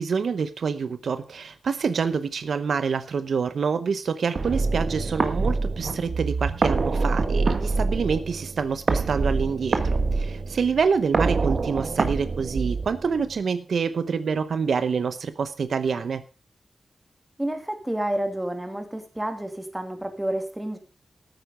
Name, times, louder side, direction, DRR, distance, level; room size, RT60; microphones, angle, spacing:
voice 1, 0.0-16.2, right 5 dB, 75° right, 12 dB, 0.8 m, -26 dB
sound 1, 4.4-13.3, right 3 dB, 55° right, 1.6 m, -25 dB
voice 2, 17.4-20.8, right 1 dB, 10° right, 6 dB, 2.3 m, -29 dB
13.5 x 9.5 x 4.9 m, 0.33 s
wide cardioid pair, 115°, 0 cm